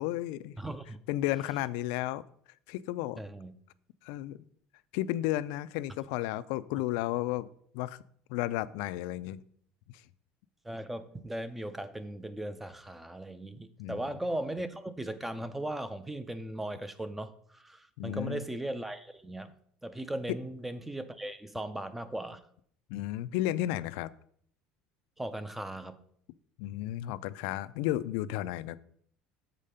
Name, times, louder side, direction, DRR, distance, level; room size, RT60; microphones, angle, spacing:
voice 1, 0.0-0.6 1.1-2.2 2.7-3.2 4.0-4.4 4.9-7.5 7.7-8.0 8.3-9.4 13.8-14.0 18.0-18.4 22.9-24.1 26.6-28.8, left 14 dB, 75° left, 0.4 m, -33 dB
voice 2, 0.6-1.0 3.2-3.5 10.6-19.5 19.8-22.4 25.2-26.0, right 1 dB, 5° right, 0.5 m, -38 dB
7.4 x 5.1 x 5.5 m
cardioid pair, 160°, 3 cm